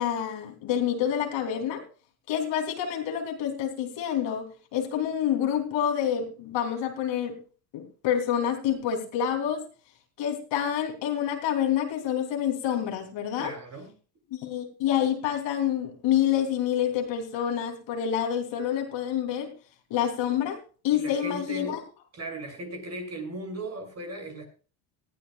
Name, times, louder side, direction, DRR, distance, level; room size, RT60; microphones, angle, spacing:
voice 1, 0.0-1.8 2.3-4.4 4.7-7.4 7.7-9.6 10.2-13.5 14.3-19.5 19.9-20.6 20.8-21.8, left 9 dB, 65° left, 4 dB, 3.3 m, -27 dB
voice 2, 13.4-13.9 20.9-21.8 22.1-24.4, right 2 dB, 35° right, 3 dB, 6.0 m, -37 dB
19.5 x 14.5 x 2.4 m, 0.36 s
supercardioid pair, 100°, 47 cm